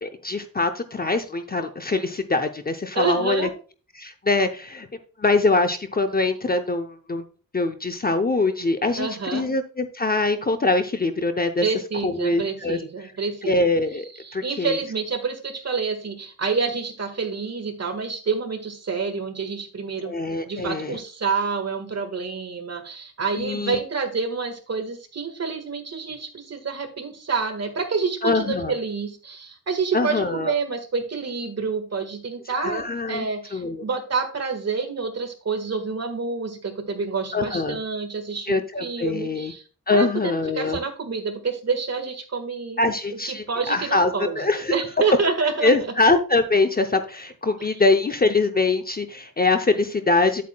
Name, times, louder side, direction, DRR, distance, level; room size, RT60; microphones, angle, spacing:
voice 1, 0.0-3.5 4.0-4.9 5.2-7.3 7.5-11.7 12.0-12.8 13.4-14.8 20.0-21.0 23.4-23.8 28.2-28.7 29.9-30.5 32.5-33.3 33.5-33.8 37.3-37.8 38.5-39.5 39.9-40.8 42.8-44.7 45.6-50.4, left 3 dB, 25° left, 7 dB, 0.6 m, -23 dB
voice 2, 2.9-3.5 9.0-9.4 11.6-13.7 14.2-20.2 20.5-39.6 39.9-42.8 43.3-44.4 44.7-45.7 47.6-47.7, right 4 dB, 45° right, 6 dB, 1.7 m, -28 dB
9.3 x 8.4 x 2.3 m, 0.37 s
wide cardioid pair, 140°, 35 cm